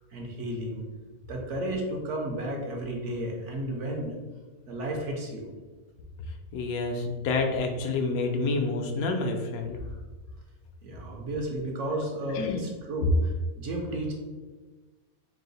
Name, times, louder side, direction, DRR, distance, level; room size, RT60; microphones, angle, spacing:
voice 1, 0.1-0.8 1.3-4.2 4.7-5.5 10.8-14.1, right 1 dB, 60° right, 0 dB, 0.9 m, -33 dB
voice 2, 6.5-9.8 12.3-12.6 13.9-14.0, left 3 dB, 75° left, 3 dB, 1.0 m, -28 dB
4.7 x 2.1 x 3.8 m, 1.3 s
omnidirectional pair, 1.6 m